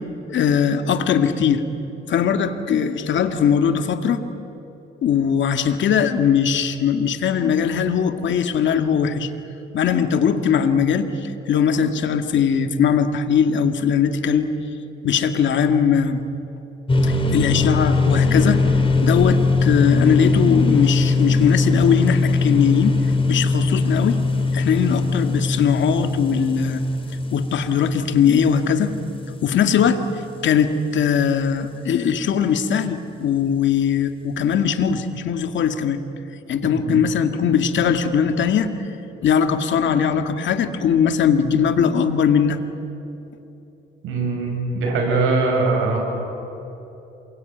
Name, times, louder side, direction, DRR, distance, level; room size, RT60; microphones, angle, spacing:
voice 1, 0.3-1.6 2.1-4.2 5.0-9.3 9.7-14.5 15.0-16.2 17.0-18.6 19.0-23.0 23.3-24.2 24.5-26.8 27.3-28.9 29.4-30.0 30.4-36.0 36.5-38.7 39.2-42.6, left 7 dB, 70° left, 7 dB, 2.1 m, -20 dB
sound 1, 16.9-30.4, left 3 dB, 25° left, 3.6 m, -21 dB
voice 2, 36.6-37.0 44.0-46.0, right 3 dB, 85° right, 1 dB, 7.0 m, -22 dB
27.5 x 23.5 x 9.3 m, 3.0 s
cardioid pair, 90°, 20 cm